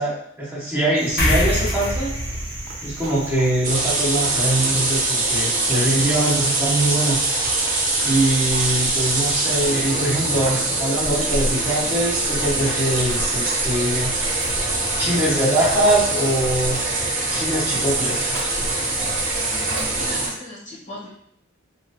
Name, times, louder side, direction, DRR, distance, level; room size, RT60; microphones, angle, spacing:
voice 1, 0.0-2.1 2.8-7.2 8.0-14.1 15.0-16.9 17.3-18.2, right 1 dB, 10° right, -7 dB, 0.6 m, -22 dB
Cricket, 0.9-20.4, right 3 dB, 75° right, 0.6 m, -37 dB
sound 1, 1.2-8.0, left 1 dB, 55° left, 0.7 m, -29 dB
sound 2, 3.6-20.3, right 2 dB, 40° right, 0.9 m, -23 dB
voice 2, 19.3-21.1, equal, 40° left, -6 dB, 1.1 m, -37 dB
3.0 x 2.4 x 2.7 m, 0.72 s
head